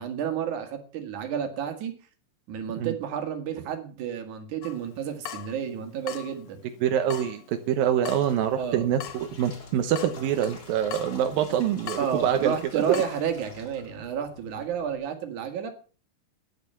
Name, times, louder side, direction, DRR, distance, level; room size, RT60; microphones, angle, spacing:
voice 1, 0.0-1.9 2.5-6.6 8.5-8.8 12.0-15.7, right 8 dB, 60° right, 6 dB, 3.2 m, -31 dB
Water tap faucet / Drip, 4.6-13.2, left 11 dB, 70° left, 1.6 m, -43 dB
voice 2, 6.8-7.4 7.7-13.0, right 9 dB, 80° right, 7 dB, 2.7 m, -25 dB
sound 1, 8.0-15.0, left 3 dB, 30° left, 2.4 m, -47 dB
12.5 x 10.5 x 5.6 m, 0.38 s
omnidirectional pair, 4.1 m